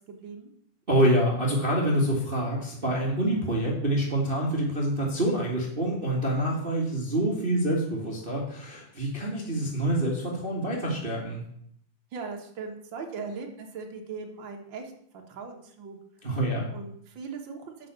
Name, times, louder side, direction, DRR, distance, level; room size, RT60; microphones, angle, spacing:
voice 1, 0.1-0.5 12.1-16.0 16.7-17.9, right 5 dB, 80° right, 2 dB, 1.0 m, -39 dB
voice 2, 0.9-11.4 16.2-16.7, right 1 dB, 45° right, -2 dB, 0.7 m, -26 dB
8.7 x 6.2 x 6.8 m, 0.68 s
omnidirectional pair, 4.1 m